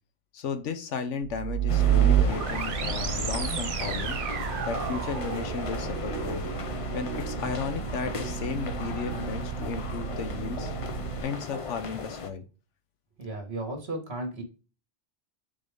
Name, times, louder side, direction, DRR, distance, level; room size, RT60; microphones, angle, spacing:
voice 1, 0.3-4.2 4.6-6.4 6.9-10.7 11.2-12.4, left 5 dB, 85° left, 9 dB, 1.2 m, -34 dB
sound 1, 1.2-11.2, right 10 dB, 85° right, 1.1 m, -30 dB
sound 2, 1.7-12.3, left 4 dB, 40° left, 0.5 m, -36 dB
voice 2, 13.2-14.4, right 2 dB, 60° right, 3 dB, 2.0 m, -34 dB
6.7 x 4.1 x 3.5 m, 0.34 s
omnidirectional pair, 1.2 m